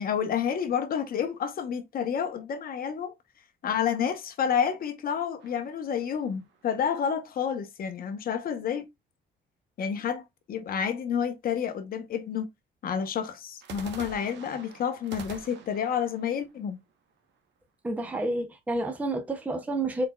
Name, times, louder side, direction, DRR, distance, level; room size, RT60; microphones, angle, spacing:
voice 1, 0.0-3.1 3.6-8.8 9.8-12.5 12.8-16.8, left 7 dB, 50° left, 0.8 m, -29 dB
sound 1, 5.4-6.8 13.6-17.6, right 5 dB, 65° right, 0.9 m, -47 dB
voice 2, 17.8-20.1, right 2 dB, 10° right, 0.5 m, -29 dB
4.2 x 4.1 x 2.2 m
cardioid pair, 165°, 20 cm